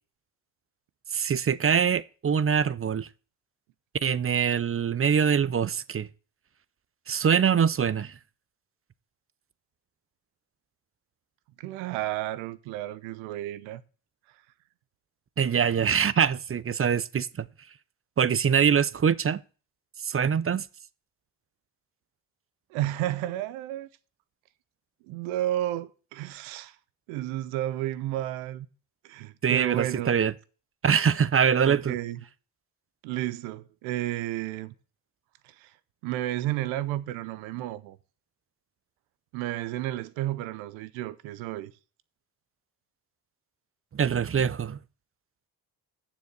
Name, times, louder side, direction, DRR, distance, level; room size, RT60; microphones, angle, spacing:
voice 1, 1.1-3.1 4.0-6.1 7.1-8.1 15.4-17.5 18.2-19.4 20.0-20.7 29.4-30.3 30.8-31.9 43.9-44.8, right 7 dB, 30° right, 0.6 m, -24 dB
voice 2, 11.6-13.8 22.7-23.9 25.0-26.8 27.1-28.7 29.0-30.2 31.6-32.2 33.0-34.7 35.4-35.7 36.0-38.0 39.3-41.7, right 14 dB, 85° right, 0.7 m, -32 dB
7.1 x 7.0 x 7.9 m
supercardioid pair, 50°, 47 cm